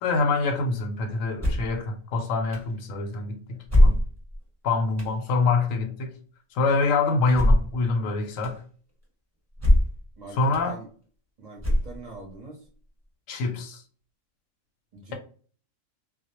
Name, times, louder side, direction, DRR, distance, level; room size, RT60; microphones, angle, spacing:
voice 1, 0.0-4.0 4.6-6.1 6.5-8.6 10.4-10.8 13.3-13.8, left 3 dB, 90° left, 1.0 m, -25 dB
sound 1, 1.4-1.8 2.5-2.6 3.7-4.4 5.0-5.1 7.3-7.8 8.4-8.5 9.6-10.0 10.5-10.6 11.6-12.2, left 1 dB, 15° right, 0.9 m, -20 dB
voice 2, 10.2-10.9 11.4-12.7 14.9-15.1, right 3 dB, 45° right, 0.6 m, -43 dB
2.2 x 2.0 x 2.8 m
omnidirectional pair, 1.3 m